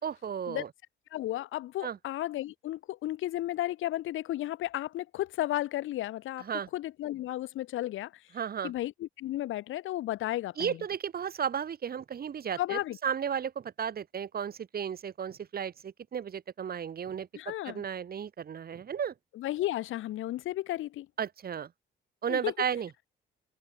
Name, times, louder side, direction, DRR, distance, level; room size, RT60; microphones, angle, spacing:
voice 1, 0.0-0.7 1.8-2.0 6.4-6.7 8.3-8.7 10.6-19.1 21.2-21.7 22.2-22.9, right 8 dB, 50° right, 1.9 m, -34 dB
voice 2, 1.1-6.5 6.7-8.1 8.6-10.8 12.6-13.0 17.3-17.8 19.3-21.1 22.3-22.5, left 14 dB, 85° left, 3.9 m, -33 dB
cardioid pair, 90°, 20 cm